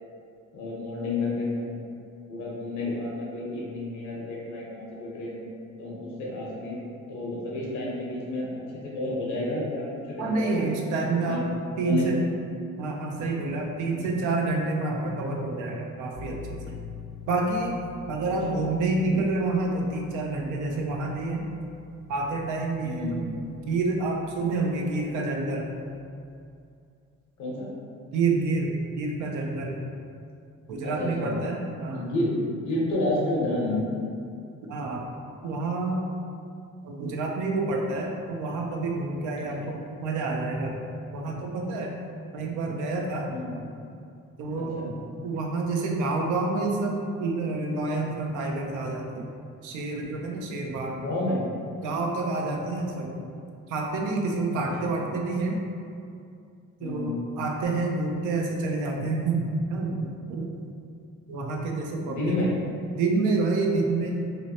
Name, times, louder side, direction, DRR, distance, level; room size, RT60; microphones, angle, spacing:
voice 1, 0.5-1.8 2.3-5.5 5.8-6.8 7.1-8.5 8.7-10.7 11.2-11.4 11.8-12.1 14.0-14.1 18.5-18.6 22.8-23.2 27.4-27.7 30.8-31.4 31.9-33.8 43.3-43.5 44.8-44.9 50.9-51.5 54.8-54.9 56.8-57.2 62.0-62.5, left 2 dB, 70° left, -5 dB, 0.8 m, -30 dB
voice 2, 10.2-11.4 11.8-12.2 12.8-16.8 17.3-17.8 18.1-21.4 22.1-23.3 23.7-25.7 28.1-29.7 30.7-32.1 34.7-35.1 35.4-36.0 36.8-40.8 41.1-41.9 42.3-43.4 44.4-49.3 49.6-51.0 51.8-53.3 53.7-55.6 56.8-60.5 61.3-62.4 63.0-64.1, right 3 dB, 80° right, 0 dB, 0.5 m, -28 dB
sound 1, 16.1-25.9, left 5 dB, 40° right, 0.8 m, -46 dB
2.7 x 2.0 x 2.7 m, 2.4 s
cardioid pair, 90°, 30 cm